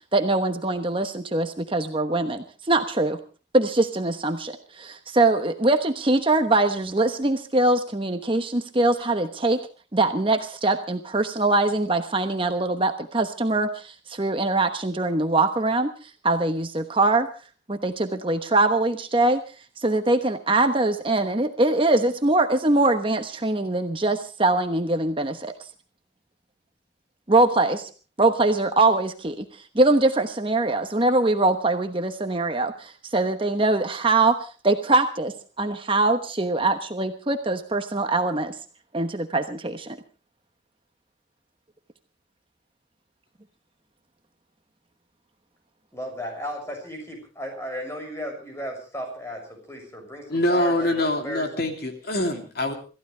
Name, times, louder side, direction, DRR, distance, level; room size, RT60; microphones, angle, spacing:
voice 1, 0.1-3.2 3.5-9.6 9.9-17.3 17.7-19.4 19.8-25.7 27.3-27.9 28.2-38.5 38.9-40.0, right 2 dB, 25° right, 7 dB, 1.1 m, -23 dB
voice 2, 45.9-51.5, equal, 15° left, 2 dB, 6.6 m, -35 dB
voice 3, 50.3-52.7, left 1 dB, 55° left, 5 dB, 3.0 m, -24 dB
27.0 x 15.0 x 3.3 m, 0.36 s
head